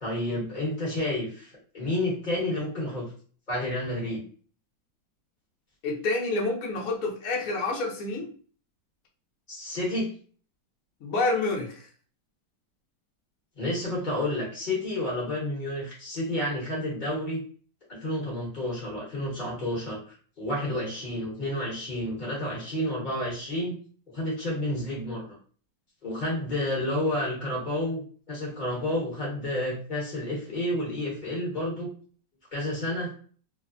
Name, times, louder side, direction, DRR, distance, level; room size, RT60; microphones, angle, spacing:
voice 1, 0.0-3.0 3.5-4.2 9.5-10.1 13.6-17.4 17.9-20.0 20.4-23.8 24.1-25.4 26.0-28.0 28.3-31.9 32.5-33.1, left 1 dB, 35° left, -5 dB, 0.9 m, -30 dB
voice 2, 5.8-8.3 11.0-11.7, left 3 dB, 65° left, -1 dB, 0.9 m, -28 dB
3.1 x 2.1 x 2.4 m, 0.43 s
omnidirectional pair, 2.0 m